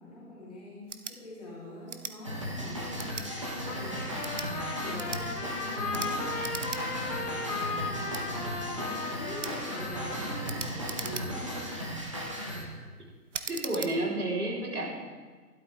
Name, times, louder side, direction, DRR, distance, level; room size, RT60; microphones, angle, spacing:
voice 1, 0.0-11.6, left 1 dB, 25° left, -6 dB, 2.8 m, -44 dB
sound 1, 0.8-1.2 1.9-2.2 3.0-3.3 4.1-4.5 5.0-5.2 5.9-6.1 6.4-6.8 7.2-7.3 8.1-8.2 9.4-9.6 10.5-11.5 12.1-12.4 13.3-13.9, right 5 dB, 50° right, 0.7 m, -39 dB
sound 2, 2.2-12.6, equal, 20° right, 1.0 m, -36 dB
Trumpet, 3.7-10.8, left 4 dB, 85° left, 2.1 m, -37 dB
voice 2, 13.5-14.9, right 1 dB, 75° right, -4 dB, 4.2 m, -30 dB
13.0 x 12.0 x 3.6 m, 1.5 s
hypercardioid pair, 175°, 46 cm